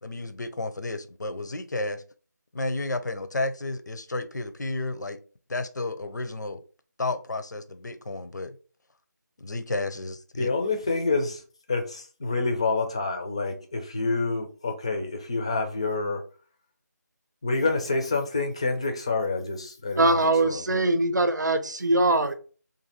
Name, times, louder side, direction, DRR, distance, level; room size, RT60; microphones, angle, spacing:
voice 1, 0.0-2.0 2.5-5.2 5.5-6.6 7.0-8.6 9.4-10.5, left 2 dB, 75° left, 0.5 m, -32 dB
voice 2, 10.3-11.4 11.7-16.2 17.4-20.8, left 3 dB, 20° left, 0.4 m, -28 dB
voice 3, 20.0-22.3, right 2 dB, 75° right, 0.7 m, -22 dB
2.7 x 2.6 x 4.0 m
figure-of-eight pair, 165°, 10 cm